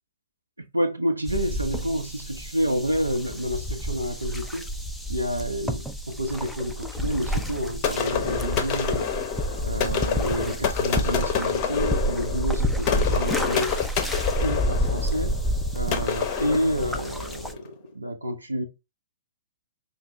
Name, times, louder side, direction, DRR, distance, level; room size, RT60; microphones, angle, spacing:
voice 1, 0.7-4.7 5.1-9.1 9.6-13.7 14.4-15.4 15.7-18.6, equal, 80° right, 0.6 m, -29 dB
sound 1, 1.3-17.5, equal, ahead, 0.4 m, -29 dB
sound 2, 7.8-17.5, left 7 dB, 30° left, 0.7 m, -28 dB
4.9 x 2.0 x 3.3 m
figure-of-eight pair, 115°, 0 cm